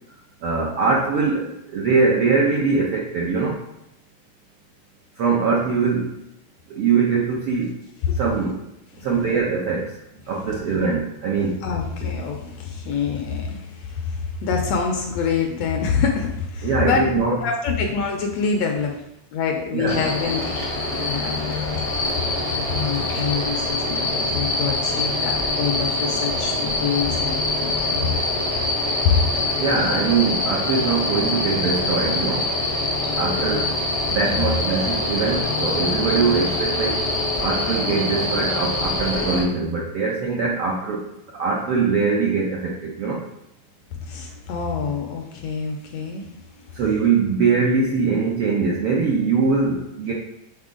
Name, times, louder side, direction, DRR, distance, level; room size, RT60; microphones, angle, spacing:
voice 1, 0.4-3.6 5.2-6.1 6.7-7.7 8.1-8.6 9.0-10.0 10.3-11.6 16.6-17.4 19.7-20.1 29.6-32.5 33.2-33.8 34.1-37.0 37.4-41.0 41.3-43.2 46.7-50.1, right 4 dB, 75° right, -3 dB, 1.3 m, -22 dB
voice 2, 11.6-19.0 19.3-20.4 21.1-21.4 22.5-28.1 29.0-29.2 34.2-34.6 44.0-46.2 46.7-46.8, left 6 dB, 75° left, 2 dB, 1.7 m, -26 dB
sound 1, 19.9-39.4, left 2 dB, 40° left, 0.5 m, -24 dB
7.8 x 4.2 x 3.7 m, 0.86 s
omnidirectional pair, 3.5 m